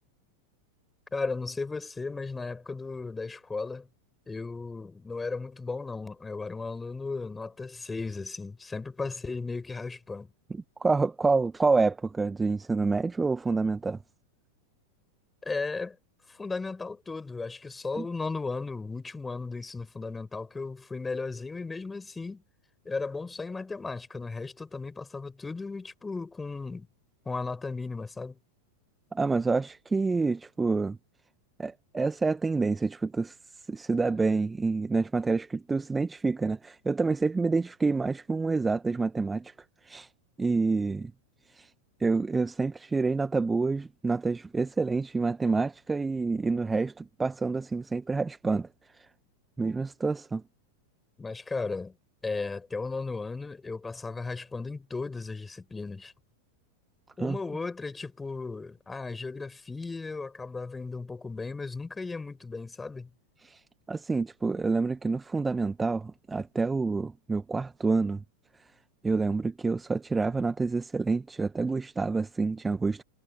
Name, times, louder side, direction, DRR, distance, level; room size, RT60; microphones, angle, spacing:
voice 1, 1.1-3.9 4.3-10.3 15.4-16.0 16.3-22.4 22.8-26.9 27.3-28.4 51.2-52.0 52.2-56.1 57.2-63.1, left 3 dB, 10° left, 6.9 m, -35 dB
voice 2, 10.5-14.0 18.0-18.1 29.1-31.0 31.6-39.5 39.8-40.1 40.4-41.1 41.5-41.7 42.0-48.7 48.9-49.1 49.6-50.4 57.2-57.4 63.4-63.6 63.9-68.2 68.6-68.7 69.0-73.0, right 4 dB, 10° right, 1.6 m, -28 dB
figure-of-eight pair, 90°, 0 cm